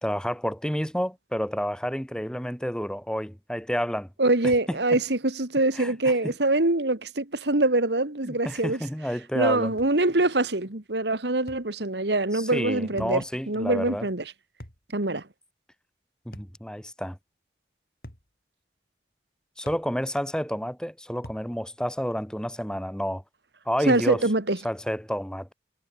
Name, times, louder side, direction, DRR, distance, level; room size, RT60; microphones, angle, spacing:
voice 1, 0.0-4.1 4.4-5.0 5.7-6.3 8.2-9.7 12.3-14.1 16.2-17.2 19.6-23.2 23.6-24.2 24.6-25.5, equal, 5° left, 3.2 m, -30 dB
voice 2, 4.2-8.8 9.3-14.2 14.9-15.3 23.9-24.6, right 2 dB, 85° right, 2.2 m, -24 dB
sound 1, 9.8-10.0 11.5-11.7 13.0-13.2 14.6-14.9 16.3-16.6 18.0-18.3 19.7-19.9 21.2-21.5, equal, 55° left, 5.1 m, -44 dB
head